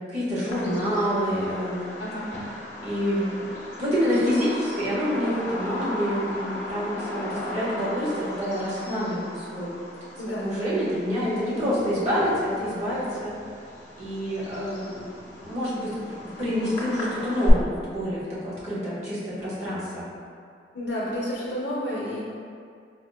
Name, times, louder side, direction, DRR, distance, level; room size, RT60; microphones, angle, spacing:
voice 1, 0.1-1.8 2.8-3.5 3.8-9.7 10.4-13.3 14.0-15.1 15.4-16.0 16.4-20.0, equal, 35° right, -8 dB, 0.9 m, -27 dB
Bird vocalization bird call bird song, 0.5-17.5, left 1 dB, 45° left, 0.7 m, -36 dB
voice 2, 2.0-2.3 10.2-10.8 20.7-22.2, equal, 80° left, -7 dB, 0.5 m, -30 dB
5.0 x 2.1 x 2.2 m, 2.4 s
head